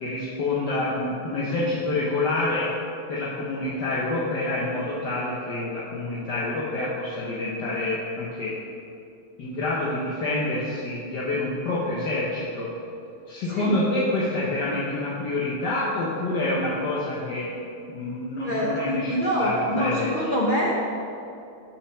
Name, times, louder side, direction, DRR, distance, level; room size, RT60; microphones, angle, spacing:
voice 1, 0.0-2.7 3.1-8.5 9.4-12.7 13.3-17.5 17.9-20.3, left 2 dB, 60° left, -6 dB, 1.6 m, -27 dB
voice 2, 18.4-20.7, equal, 40° left, -5 dB, 0.7 m, -25 dB
6.6 x 6.2 x 6.4 m, 2.6 s
omnidirectional pair, 2.1 m